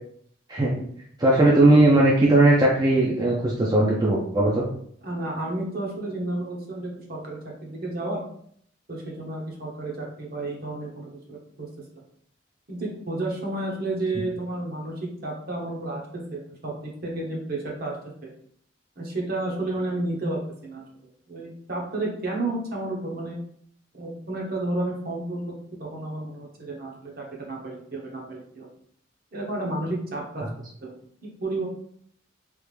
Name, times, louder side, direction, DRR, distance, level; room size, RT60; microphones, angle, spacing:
voice 1, 0.5-0.8 1.2-4.7, right 2 dB, 20° right, -4 dB, 0.4 m, -18 dB
voice 2, 5.0-8.2 8.9-11.7 12.7-17.9 18.2-18.3 19.0-20.8 21.3-23.4 23.9-25.4 25.8-28.7 29.3-30.4 30.8-30.9 31.2-31.7, right 2 dB, 50° right, -1 dB, 0.9 m, -31 dB
3.3 x 2.5 x 3.2 m, 0.64 s
head